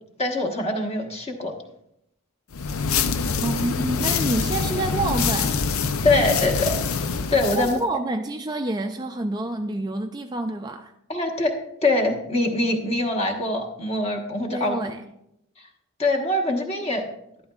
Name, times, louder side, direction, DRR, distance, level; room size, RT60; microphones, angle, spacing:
voice 1, 0.2-1.5 6.0-7.0 7.3-7.8 11.1-11.5 11.8-14.9 15.6-15.7 16.0-17.0, left 2 dB, 30° left, 1 dB, 1.3 m, -23 dB
sound 1, 2.5-7.8, left 5 dB, 90° left, 0.6 m, -25 dB
voice 2, 3.4-5.5 7.5-10.9 14.5-15.0, right 2 dB, 20° right, 5 dB, 0.4 m, -28 dB
12.5 x 11.5 x 2.4 m, 0.78 s
head